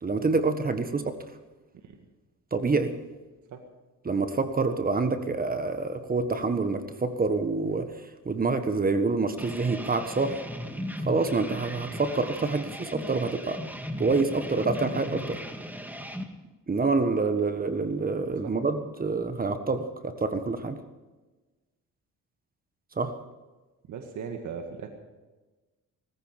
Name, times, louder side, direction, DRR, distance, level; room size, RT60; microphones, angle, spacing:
voice 1, 0.0-1.2 2.5-3.0 4.0-7.9 8.2-10.4 11.0-13.6 14.0-15.4 16.7-20.8 23.0-23.1, right 3 dB, 30° right, 9 dB, 1.5 m, -27 dB
sound 1, 9.4-16.3, equal, 5° right, 1.9 m, -37 dB
voice 2, 23.9-24.9, right 6 dB, 75° right, 4 dB, 1.9 m, -38 dB
18.0 x 15.5 x 5.2 m, 1.2 s
cardioid pair, 90°, 30 cm